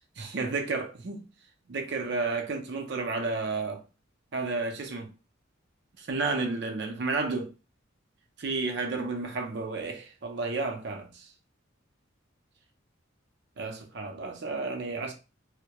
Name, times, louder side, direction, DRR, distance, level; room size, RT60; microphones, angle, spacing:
voice 1, 0.2-1.2 1.7-3.8 4.3-5.1 6.0-7.5 8.4-11.3 13.6-15.1, right 3 dB, 55° right, 0.5 m, -32 dB
2.2 x 2.1 x 2.8 m
head